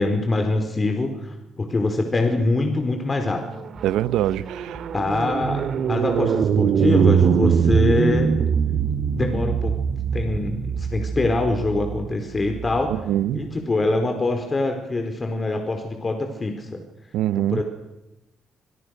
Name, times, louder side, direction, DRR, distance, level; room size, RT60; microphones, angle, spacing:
voice 1, 0.0-3.4 4.9-8.3 9.1-9.7 10.1-13.0 13.3-16.8 17.3-17.6, left 2 dB, 30° left, 4.5 m, -24 dB
sound 1, 3.4-13.0, right 7 dB, 65° right, 2.2 m, -22 dB
sound 2, 3.7-6.3 8.1-11.7 12.7-14.4, right 2 dB, 20° right, 4.5 m, -41 dB
voice 2, 3.8-4.8 12.9-13.4 17.1-17.6, right 13 dB, 85° right, 0.9 m, -24 dB
30.0 x 26.5 x 6.6 m
cardioid pair, 90°, 0 cm